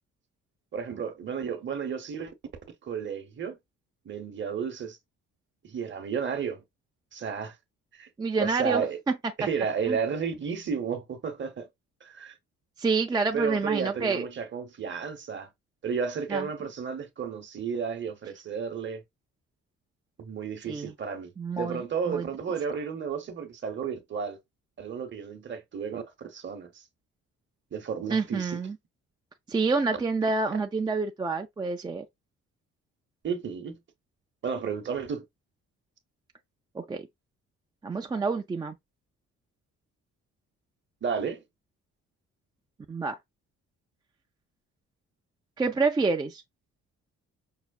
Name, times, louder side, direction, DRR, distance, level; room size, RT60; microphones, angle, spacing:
voice 1, 0.7-2.3 2.8-3.6 4.0-5.0 5.6-6.6 7.1-7.6 7.9-8.1 8.4-9.0 9.4-11.7 12.0-12.3 13.3-15.5 15.8-19.0 20.2-24.4 24.8-26.8 27.7-28.6 30.5-30.6 33.2-33.8 34.4-35.2 41.0-41.4, right 6 dB, 40° right, 0.8 m, -32 dB
voice 2, 8.2-9.2 9.9-10.0 12.8-14.3 16.3-16.5 20.7-20.9 21.4-22.3 28.1-28.8 29.5-32.0 36.7-37.1 37.8-38.8 42.9-43.2 45.6-46.4, right 4 dB, 15° right, 0.3 m, -28 dB
5.5 x 2.0 x 2.3 m
cardioid pair, 90°, 30 cm